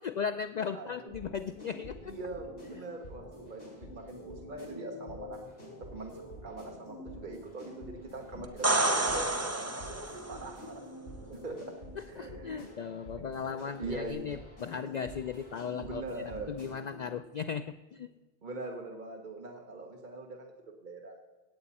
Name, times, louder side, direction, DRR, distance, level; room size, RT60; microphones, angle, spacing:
voice 1, 0.0-2.1 12.0-18.1, left 6 dB, 55° left, 10 dB, 0.5 m, -37 dB
voice 2, 0.7-1.1 2.0-5.4 5.9-10.8 11.3-11.6 12.1-12.7 13.8-14.3 15.8-16.5 18.4-20.5 20.8-21.2, right 2 dB, 50° right, 1 dB, 1.3 m, -42 dB
sound 1, 1.1-17.1, equal, 90° left, 4.9 m, -47 dB
sound 2, 8.4-10.4 14.1-14.2, right 2 dB, 15° right, 0.8 m, -29 dB
17.0 x 8.7 x 4.1 m, 1.2 s
omnidirectional pair, 1.0 m